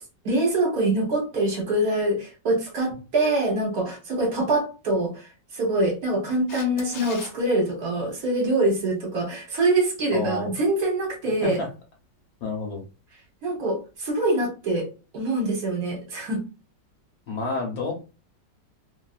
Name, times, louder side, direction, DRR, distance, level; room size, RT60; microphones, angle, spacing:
voice 1, 0.2-5.3 5.5-11.6 13.4-14.9 15.1-16.4, right 2 dB, 60° right, 0 dB, 1.3 m, -24 dB
Camera, 6.5-7.3 14.0-14.1, left 5 dB, 75° left, 0.6 m, -39 dB
voice 2, 10.1-10.5 11.4-11.7 12.4-12.8 17.3-17.9, left 3 dB, 60° left, -1 dB, 1.2 m, -29 dB
3.0 x 2.5 x 2.4 m, 0.32 s
omnidirectional pair, 1.9 m